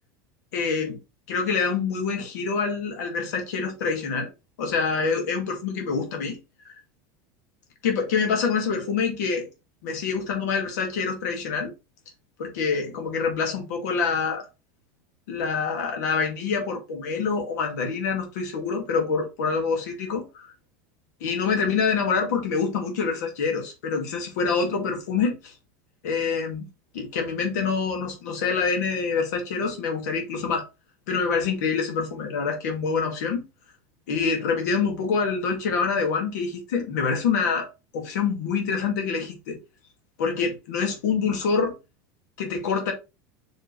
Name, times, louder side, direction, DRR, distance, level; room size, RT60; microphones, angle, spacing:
voice 1, 0.5-1.0 1.3-4.3 4.6-6.4 6.7-6.8 7.8-9.5 9.8-11.7 12.4-14.5 15.3-20.5 21.2-25.5 26.0-26.6 26.9-30.7 31.1-33.4 34.1-37.7 37.9-39.6 40.2-41.7 42.4-42.9, left 5 dB, 85° left, 2.2 m, -26 dB
5.9 x 5.0 x 3.2 m
supercardioid pair, 150°, 9 cm